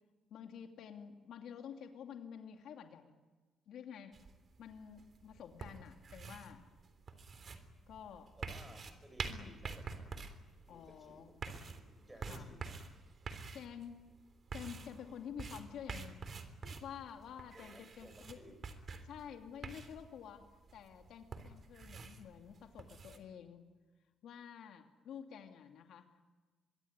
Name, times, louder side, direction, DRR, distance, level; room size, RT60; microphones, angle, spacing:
voice 1, 0.3-3.2 3.7-4.2 4.6-6.6 7.9-8.3 9.3-9.5 10.7-11.3 12.3-12.5 13.5-14.0 14.5-18.4 19.0-23.6 24.2-26.2, left 8 dB, 75° left, 5 dB, 2.6 m, -50 dB
sound 1, 4.1-23.2, right 4 dB, 45° right, 3.4 m, -48 dB
voice 2, 8.4-10.1 10.7-12.9 17.5-18.6, right 1 dB, 15° right, 8 dB, 6.7 m, -58 dB
24.0 x 23.5 x 9.7 m, 1.3 s
cardioid pair, 90°, 0 cm